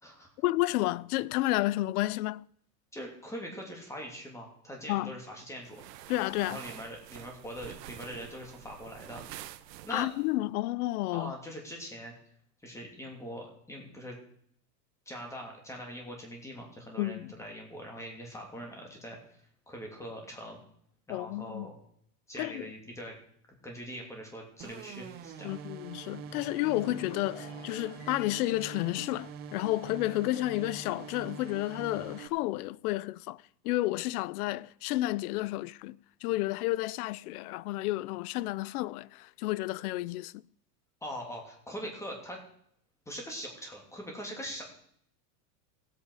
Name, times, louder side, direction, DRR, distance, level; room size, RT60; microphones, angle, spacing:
voice 1, 0.4-2.5 4.9-5.1 6.1-6.6 9.9-11.3 17.0-17.3 21.1-21.7 22.4-22.7 25.4-40.4, left 17 dB, 65° left, 0.5 m, -31 dB
voice 2, 2.9-5.8 6.4-9.2 9.8-10.1 11.1-12.1 12.6-14.2 15.1-19.4 19.7-20.6 21.1-21.7 22.3-23.1 23.6-25.5 41.0-42.4 43.1-44.8, equal, 5° left, 2.8 m, -42 dB
sound 1, 5.7-10.3, right 13 dB, 75° right, 1.0 m, -47 dB
sound 2, 24.6-32.3, right 7 dB, 20° right, 0.5 m, -45 dB
sound 3, 26.0-30.6 30.9-31.2, left 3 dB, 35° left, 5.3 m, -50 dB
16.0 x 8.5 x 4.8 m
supercardioid pair, 150°, 49 cm